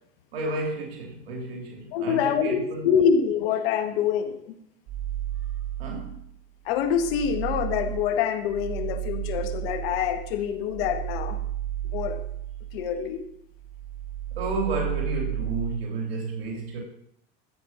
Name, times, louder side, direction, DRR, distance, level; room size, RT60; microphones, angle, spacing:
voice 1, 0.3-2.9 5.8-6.2 14.4-16.8, right 2 dB, 90° right, 1 dB, 3.3 m, -31 dB
voice 2, 1.9-4.5 6.7-11.4 11.9-12.2 12.7-13.2, left 7 dB, 75° left, 8 dB, 1.9 m, -25 dB
sound 1, 4.9-6.3 6.7-13.2 13.5-15.8, right 12 dB, 65° right, 1.5 m, -33 dB
13.0 x 8.5 x 5.8 m, 0.72 s
supercardioid pair, 105°, 30 cm